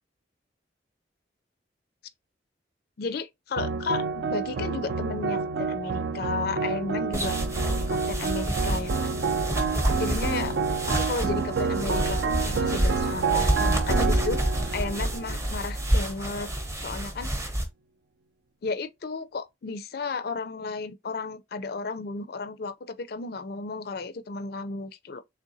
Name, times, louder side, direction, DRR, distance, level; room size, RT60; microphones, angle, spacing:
voice 1, 3.0-4.0 4.3-7.3 7.9-9.1 10.0-10.5 10.9-14.4 14.7-16.5 16.8-17.3 18.6-25.2, left 4 dB, 55° left, 0.4 m, -33 dB
sound 1, 3.6-16.0, right 5 dB, 65° right, 0.4 m, -29 dB
sound 2, 7.1-17.6, right 1 dB, 15° right, 0.6 m, -28 dB
3.7 x 3.3 x 2.6 m
head